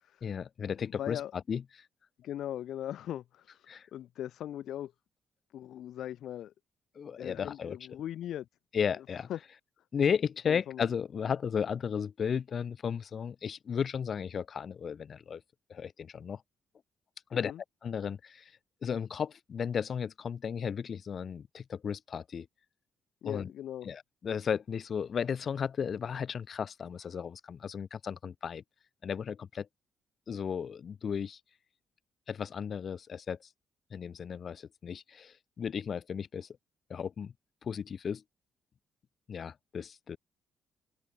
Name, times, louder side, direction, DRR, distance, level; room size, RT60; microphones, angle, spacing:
voice 1, 0.2-1.9 3.7-3.9 6.9-7.8 8.7-9.3 9.9-15.4 15.7-16.4 17.3-17.5 17.8-18.5 18.8-22.5 23.2-23.5 23.8-28.6 29.0-29.7 30.3-31.4 32.3-33.4 33.9-36.5 36.9-37.3 37.6-38.2 39.3-40.2, left 7 dB, 50° left, 1.4 m, -34 dB
voice 2, 0.9-1.3 2.2-4.9 5.5-6.5 7.2-8.5 9.0-9.1 9.3-9.4 10.5-10.8 17.5-17.6 23.2-23.9, left 11 dB, 75° left, 1.6 m, -39 dB
cardioid pair, 90°, 0 cm